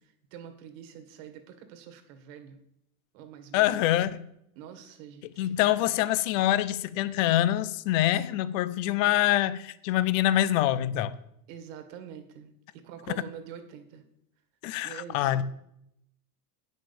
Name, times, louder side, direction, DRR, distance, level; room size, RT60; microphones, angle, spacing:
voice 1, 0.0-2.6 3.1-4.0 4.6-5.9 11.5-14.0 14.8-15.4, right 8 dB, 60° right, 2.0 m, -45 dB
voice 2, 3.5-4.2 5.4-11.1 14.6-15.4, left 13 dB, 60° left, 0.7 m, -25 dB
9.2 x 6.3 x 7.0 m
supercardioid pair, 145°, 45 cm